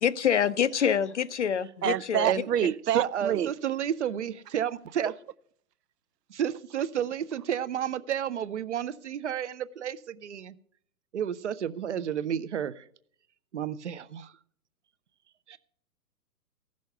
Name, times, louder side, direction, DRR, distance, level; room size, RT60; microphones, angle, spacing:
voice 1, 0.0-2.3, left 8 dB, 50° left, 0.5 m, -26 dB
voice 2, 1.8-3.5, right 10 dB, 85° right, 0.7 m, -27 dB
voice 3, 2.9-5.1 6.3-10.5 11.1-12.8 13.5-14.3 15.5-15.6, right 9 dB, 50° right, 0.6 m, -31 dB
15.0 x 6.3 x 6.8 m
hypercardioid pair, 165°, 47 cm